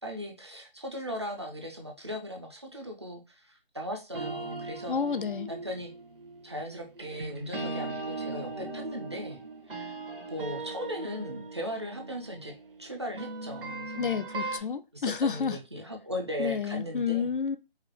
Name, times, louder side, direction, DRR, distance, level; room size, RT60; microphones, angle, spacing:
voice 1, 0.0-5.0 5.5-5.9 6.4-9.4 9.7-10.0 10.3-12.5 12.8-14.6 14.9-17.3, equal, 30° right, 0.5 m, -38 dB
sound 1, 4.1-14.6, right 2 dB, 65° right, 1.1 m, -39 dB
voice 2, 4.9-5.5 14.0-15.6 16.4-17.6, left 6 dB, 60° left, 0.4 m, -30 dB
4.7 x 2.1 x 2.9 m
figure-of-eight pair, 160°, 30 cm